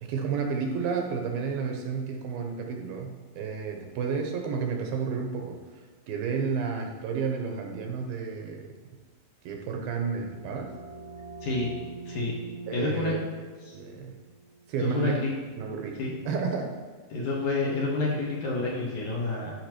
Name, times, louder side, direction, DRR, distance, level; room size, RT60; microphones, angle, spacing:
voice 1, 0.0-8.7 9.4-10.7 12.7-13.2 13.7-14.2 14.7-15.2 15.6-16.0 16.3-16.8, right 5 dB, 80° right, 2 dB, 2.4 m, -31 dB
sound 1, 9.9-15.3, right 3 dB, 50° right, 1.2 m, -45 dB
voice 2, 12.0-12.4 12.7-13.2 13.6-13.8 14.8-15.3 16.0-16.1 17.1-19.5, left 3 dB, 60° left, -3 dB, 2.3 m, -29 dB
13.5 x 5.6 x 3.0 m, 1.5 s
omnidirectional pair, 4.5 m